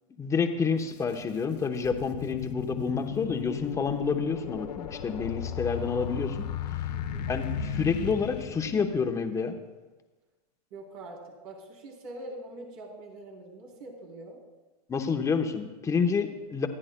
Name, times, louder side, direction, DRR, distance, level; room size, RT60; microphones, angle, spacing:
voice 1, 0.2-6.5 7.2-9.5 14.9-16.7, left 5 dB, 15° left, 5 dB, 1.0 m, -29 dB
sound 1, 0.8-0.9 1.5-9.1, left 8 dB, 85° left, 1.0 m, -35 dB
voice 2, 6.9-7.3 10.7-14.4, right 2 dB, 60° right, -1 dB, 3.4 m, -44 dB
25.0 x 9.8 x 2.2 m, 1.2 s
hypercardioid pair, 130°, 21 cm